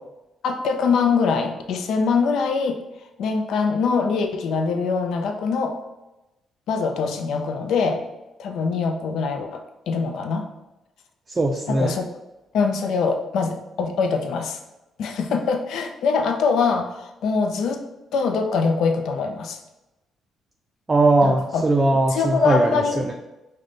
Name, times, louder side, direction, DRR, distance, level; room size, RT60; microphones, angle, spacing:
voice 1, 0.4-2.8 3.2-5.8 6.7-8.0 8.4-9.6 9.9-10.5 11.7-12.0 12.5-14.6 15.0-17.8 18.1-19.6 21.2-21.6 22.1-23.1, left 5 dB, 75° left, 5 dB, 0.5 m, -23 dB
voice 2, 11.3-11.9 20.9-23.1, right 2 dB, 25° right, 1 dB, 0.4 m, -20 dB
4.9 x 2.2 x 3.9 m, 0.98 s
cardioid pair, 90°, 0 cm